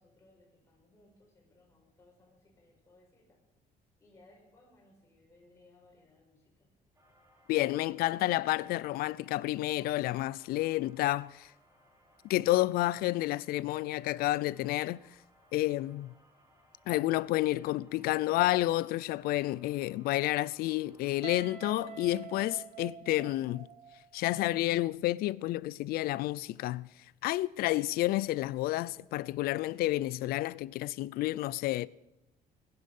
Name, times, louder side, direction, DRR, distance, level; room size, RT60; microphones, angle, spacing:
voice 1, 0.0-3.4 4.0-6.7, left 2 dB, 20° left, 4.8 m, -63 dB
sound 1, 6.9-21.8, equal, 20° right, 2.8 m, -65 dB
voice 2, 7.5-11.5 12.2-15.0 15.5-16.1 16.9-23.7 24.1-26.9 27.2-31.9, left 17 dB, 90° left, 0.5 m, -30 dB
Guitar, 21.2-24.1, right 9 dB, 50° right, 1.2 m, -46 dB
19.5 x 10.5 x 5.4 m
cardioid pair, 165°, 15 cm